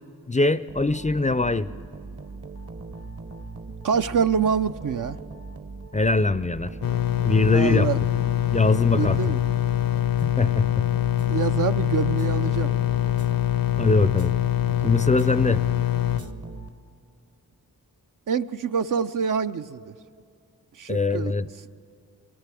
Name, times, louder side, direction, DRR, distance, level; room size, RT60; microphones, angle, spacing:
voice 1, 0.3-1.7 5.9-6.7 7.2-7.9 8.5-9.3 10.2-10.9 13.8-14.3 14.8-15.6 20.9-21.5, left 3 dB, 20° left, 15 dB, 0.5 m, -22 dB
sound 1, 0.7-17.1, right 3 dB, 40° right, 1.0 m, -39 dB
voice 2, 3.8-5.2 7.5-8.0 8.9-9.4 11.3-12.7 18.3-19.9 20.8-21.3, right 6 dB, 60° right, 10 dB, 0.6 m, -25 dB
sound 2, 6.8-16.2, left 12 dB, 65° left, 0.7 m, -24 dB
23.0 x 17.5 x 7.6 m, 2.3 s
cardioid pair, 50°, 37 cm